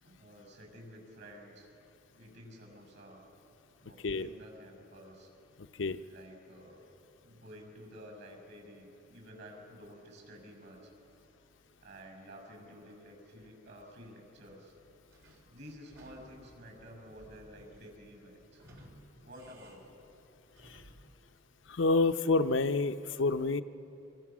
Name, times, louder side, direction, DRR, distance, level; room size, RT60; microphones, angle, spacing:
voice 1, 0.0-1.7 2.2-3.2 3.8-5.3 6.1-6.8 7.2-10.9 11.8-14.8 15.5-18.6 19.2-20.0, equal, 60° right, 2 dB, 6.9 m, -51 dB
voice 2, 5.6-6.0 20.6-20.8 21.7-23.6, left 3 dB, 65° left, 10 dB, 0.7 m, -28 dB
Sliding door / Squeak, 15.1-21.2, right 1 dB, 75° right, 3.8 m, -58 dB
26.5 x 26.0 x 6.1 m, 3.0 s
head